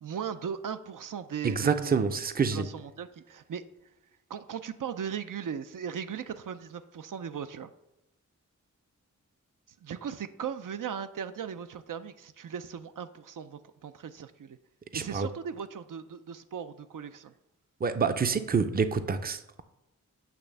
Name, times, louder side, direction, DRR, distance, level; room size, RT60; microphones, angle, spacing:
voice 1, 0.0-2.0 2.5-3.6 4.3-7.7 9.8-14.6 14.9-17.3, right 7 dB, 80° right, 0.5 m, -38 dB
voice 2, 1.4-2.7 14.9-15.3 17.8-19.6, right 5 dB, 30° right, 0.5 m, -27 dB
8.4 x 3.3 x 6.6 m
wide cardioid pair, 100°, 32 cm